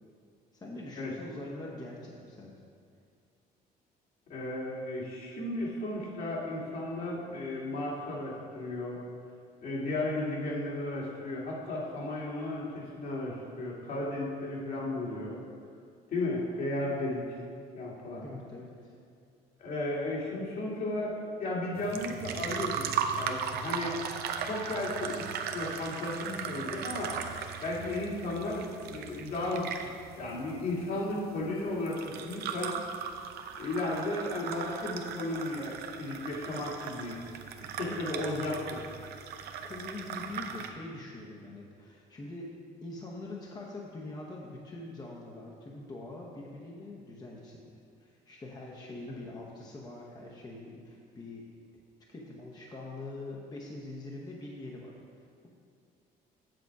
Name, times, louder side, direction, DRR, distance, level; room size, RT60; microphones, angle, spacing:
voice 1, 0.5-2.5 18.2-18.9 37.8-38.0 39.7-42.6 42.8-47.6 48.0-51.5 52.1-55.0, left 2 dB, 25° left, -2 dB, 1.0 m, -43 dB
voice 2, 4.3-9.0 9.6-15.4 16.1-17.4 17.7-18.3 19.6-22.9 23.1-24.0 24.4-27.1 27.6-29.7 30.2-32.7 33.6-37.2 37.6-38.9, left 2 dB, 60° left, -4 dB, 2.2 m, -34 dB
sound 1, 21.7-40.7, right 7 dB, 70° right, 0.7 m, -38 dB
7.9 x 6.7 x 4.7 m, 2.4 s
cardioid pair, 110°, 17 cm